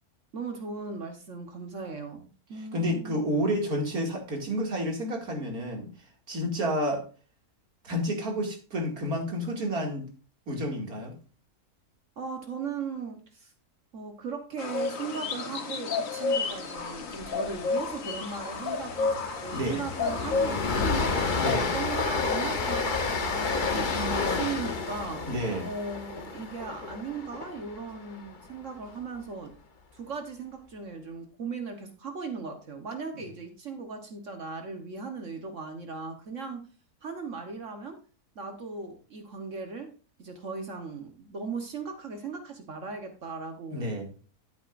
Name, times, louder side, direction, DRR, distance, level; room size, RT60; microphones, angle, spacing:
voice 1, 0.3-3.2 12.2-13.5 13.9-21.2 21.7-25.3 25.6-29.5 29.9-36.6 37.0-38.0 38.3-39.9 40.2-43.9, right 4 dB, 55° right, 5 dB, 1.4 m, -38 dB
voice 2, 2.5-5.9 6.3-7.1 7.8-10.0 10.5-11.1 19.5-19.8 21.4-21.7 25.3-25.7 43.7-44.1, equal, 75° right, 1 dB, 2.9 m, -30 dB
sound 1, 14.6-21.6, left 4 dB, 60° left, 1.6 m, -31 dB
Train, 17.2-17.5 17.8-17.9 18.3-28.5, left 4 dB, 35° left, 1.0 m, -30 dB
14.0 x 8.0 x 2.5 m, 0.35 s
omnidirectional pair, 1.6 m